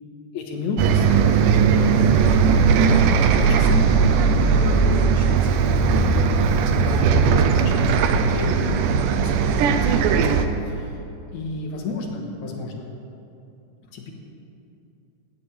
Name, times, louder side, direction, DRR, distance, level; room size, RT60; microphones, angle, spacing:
voice 1, 0.3-3.9 4.4-6.2 6.9-8.7 9.2-11.0 11.3-12.9 13.9-14.1, left 3 dB, 65° left, 1 dB, 2.6 m, -32 dB
Bus, 0.8-10.5, right 5 dB, 90° right, 2.2 m, -18 dB
18.5 x 14.0 x 3.4 m, 2.7 s
omnidirectional pair, 3.7 m